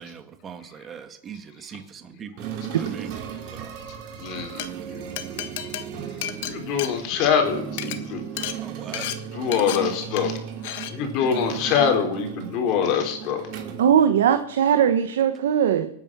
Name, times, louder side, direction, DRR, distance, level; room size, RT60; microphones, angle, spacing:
voice 1, 0.0-3.1 3.5-3.7 8.6-9.1, right 7 dB, 20° right, 8 dB, 1.5 m, -40 dB
sound 1, 2.4-14.6, right 9 dB, 45° right, 2.6 m, -36 dB
voice 2, 2.5-2.8 4.2-5.2 6.4-8.2 8.9-9.1 9.3-10.4 10.8-13.5, left 7 dB, 40° left, 4 dB, 3.5 m, -25 dB
Glass, 4.4-4.7 5.2-7.4 7.7-8.0 8.4-8.6 8.9-9.2 9.5-9.8 10.2-10.4 10.6-10.9, left 12 dB, 55° left, 1.5 m, -32 dB
voice 3, 13.8-15.9, right 9 dB, 85° right, 9 dB, 1.1 m, -20 dB
24.0 x 9.6 x 6.1 m, 0.72 s
supercardioid pair, 150°, 0 cm